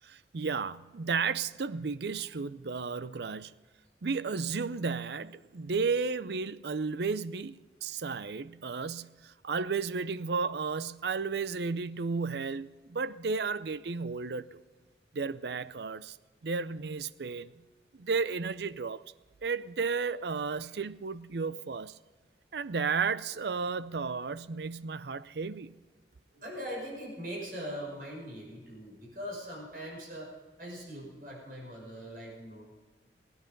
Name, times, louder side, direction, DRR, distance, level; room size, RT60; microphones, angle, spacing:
voice 1, 0.0-3.5 4.0-14.6 15.1-16.2 16.4-17.5 17.9-19.1 19.4-22.0 22.5-25.8, right 4 dB, 65° right, 0.5 m, -33 dB
voice 2, 26.3-30.3 30.6-32.6, equal, 50° right, 5.7 m, -41 dB
22.5 x 9.7 x 5.4 m
head